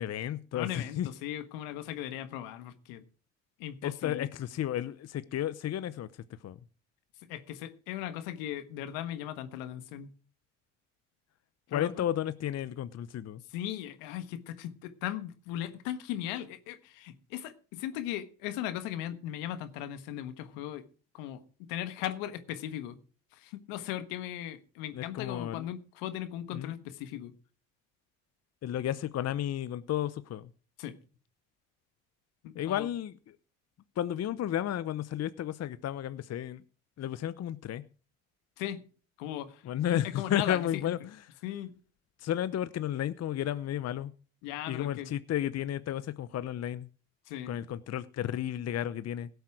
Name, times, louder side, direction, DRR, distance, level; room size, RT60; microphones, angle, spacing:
voice 1, 0.0-1.1 3.8-6.1 6.4-6.6 11.7-13.4 24.9-25.7 26.5-26.7 28.6-30.5 32.6-33.1 34.0-36.6 37.0-37.8 39.7-41.0 42.2-44.1 44.7-46.9 47.5-49.3, left 11 dB, 50° left, 0.8 m, -32 dB
voice 2, 0.5-3.0 3.6-4.3 7.3-10.1 11.7-12.0 13.5-20.9 21.1-23.0 23.3-27.3 30.8-31.0 32.4-32.9 38.6-38.8 39.2-40.9 41.4-41.7 44.4-45.2 47.3-47.6, left 12 dB, 80° left, 1.5 m, -38 dB
17.0 x 8.1 x 4.9 m
supercardioid pair, 70°, 34 cm